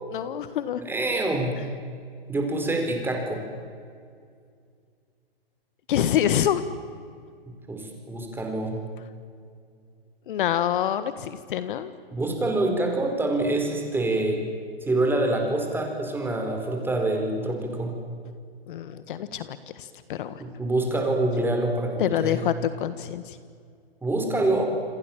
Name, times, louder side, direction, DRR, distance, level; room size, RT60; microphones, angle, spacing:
voice 1, 0.1-0.8 5.9-6.6 10.3-11.9 18.7-20.4 22.0-23.4, left 10 dB, 55° left, 13 dB, 1.5 m, -26 dB
voice 2, 0.8-1.5 2.3-3.4 7.7-8.8 12.1-14.4 14.9-17.9 20.4-22.4 24.0-24.7, right 2 dB, 5° right, 3 dB, 4.7 m, -26 dB
28.5 x 25.0 x 7.4 m, 2.2 s
hypercardioid pair, 135°, 31 cm